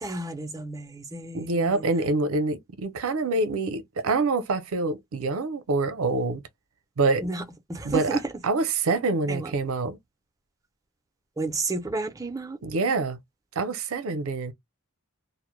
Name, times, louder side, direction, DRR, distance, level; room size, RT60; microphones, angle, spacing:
voice 1, 0.0-1.8 7.2-7.4 7.7-8.3 9.3-9.5 11.4-12.6, right 2 dB, 15° right, 0.4 m, -31 dB
voice 2, 1.3-6.4 7.0-7.2 7.8-8.2 8.4-10.0 12.6-13.2 13.6-14.5, right 3 dB, 70° right, 0.5 m, -26 dB
2.1 x 2.0 x 3.0 m
head